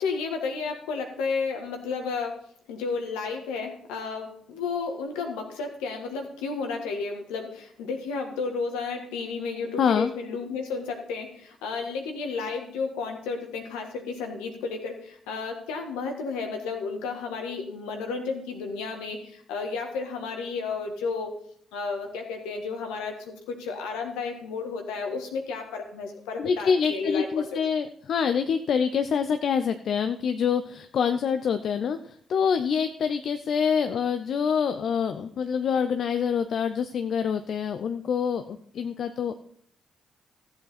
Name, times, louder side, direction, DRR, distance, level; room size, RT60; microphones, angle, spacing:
voice 1, 0.0-2.4 2.7-21.3 21.7-27.6, left 4 dB, 75° left, 4 dB, 1.6 m, -32 dB
voice 2, 9.8-10.1 26.4-39.3, left 7 dB, 60° left, 9 dB, 0.5 m, -26 dB
14.0 x 7.8 x 4.2 m, 0.62 s
hypercardioid pair, 40°, 0 cm